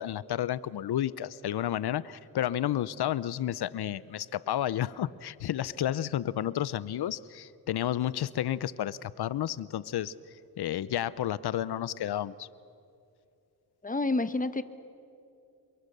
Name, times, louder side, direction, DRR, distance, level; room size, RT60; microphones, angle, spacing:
voice 1, 0.0-10.1 10.6-12.5, left 11 dB, 80° left, 19 dB, 0.7 m, -31 dB
voice 2, 13.8-14.6, left 2 dB, 20° left, 12 dB, 1.1 m, -28 dB
28.0 x 23.0 x 6.7 m, 2.6 s
cardioid pair, 80°, 38 cm